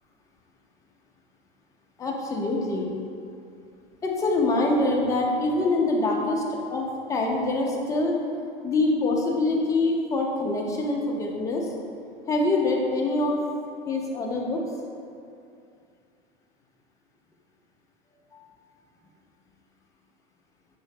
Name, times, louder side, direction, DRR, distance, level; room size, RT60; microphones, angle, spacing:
voice 1, 2.0-2.9 4.0-8.1 8.6-11.7 12.3-13.4 13.9-14.6 18.3-18.5, left 2 dB, 10° left, -1 dB, 0.4 m, -25 dB
4.9 x 2.6 x 3.5 m, 2.5 s
figure-of-eight pair, 90°, 31 cm